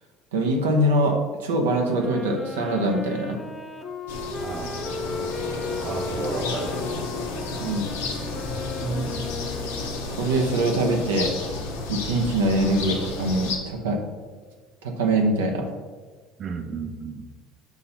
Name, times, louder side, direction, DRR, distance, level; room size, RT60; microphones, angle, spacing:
voice 1, 0.3-3.4 5.2-5.3 7.6-7.9 10.2-11.3 11.9-14.0 14.8-15.8, right 1 dB, 90° right, 2 dB, 0.8 m, -23 dB
Wind instrument woodwind instrument, 1.8-10.2, left 3 dB, 20° left, 0.7 m, -36 dB
sound 1, 4.1-13.6, left 3 dB, 85° left, 0.8 m, -32 dB
voice 2, 4.4-4.7 5.8-6.9 8.8-9.3 16.4-17.3, right 4 dB, 45° right, 7 dB, 0.5 m, -32 dB
sound 2, 4.8-11.0, left 8 dB, 55° left, 0.3 m, -40 dB
5.9 x 2.9 x 5.6 m, 1.4 s
hypercardioid pair, 80°, 0 cm